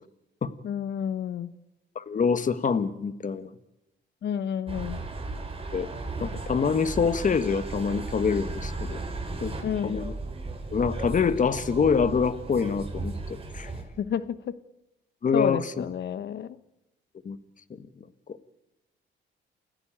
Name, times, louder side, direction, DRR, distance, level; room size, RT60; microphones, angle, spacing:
voice 1, 0.6-1.5 4.2-5.0 9.6-10.0 14.0-14.6 15.3-16.6, left 8 dB, 60° left, 1.1 m, -30 dB
voice 2, 1.9-3.5 5.7-5.9 6.2-9.0 9.4-9.5 9.8-10.1 10.7-13.1 13.5-13.7 15.2-15.8 17.2-17.4, left 5 dB, 40° left, 1.4 m, -25 dB
sound 1, 4.7-13.8, right 3 dB, 30° right, 6.8 m, -35 dB
28.5 x 15.5 x 8.9 m
cardioid pair, 90°, 20 cm